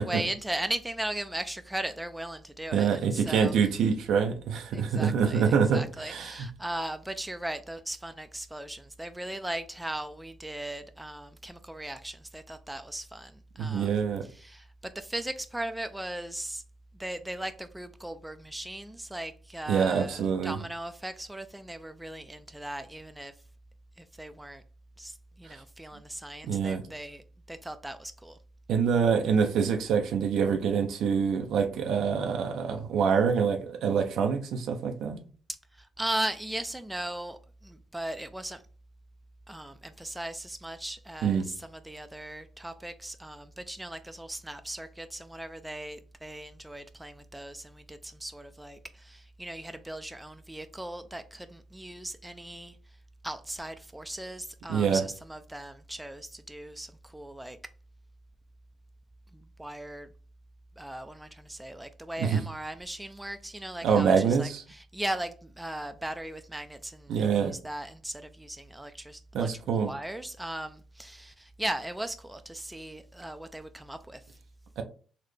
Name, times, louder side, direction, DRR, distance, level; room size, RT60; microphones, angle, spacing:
voice 1, 0.0-3.5 4.7-13.9 14.3-16.6 17.0-23.3 24.0-24.6 25.0-28.4 35.7-38.6 39.5-52.8 53.2-57.6 59.3-60.1 60.8-74.2, right 1 dB, 10° right, 0.3 m, -38 dB
voice 2, 2.7-6.5 13.6-14.3 19.7-20.6 26.5-26.8 28.7-35.2 41.2-41.5 54.7-55.0 62.2-62.4 63.8-64.6 67.1-67.6 69.3-69.9 74.8-74.9, right 6 dB, 80° right, 0.4 m, -26 dB
3.9 x 2.1 x 3.1 m
cardioid pair, 90°, 0 cm